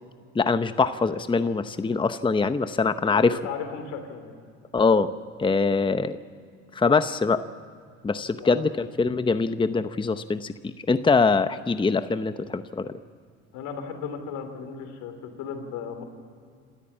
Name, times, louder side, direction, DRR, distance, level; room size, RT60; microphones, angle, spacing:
voice 1, 0.3-3.4 4.7-5.1 5.4-6.2 6.7-7.4 8.0-12.9, left 4 dB, 15° left, 11 dB, 0.8 m, -23 dB
voice 2, 3.0-4.4 8.4-8.6 13.5-16.0, left 6 dB, 80° left, 7 dB, 3.3 m, -36 dB
27.0 x 13.5 x 8.6 m, 2.2 s
supercardioid pair, 85°, 31 cm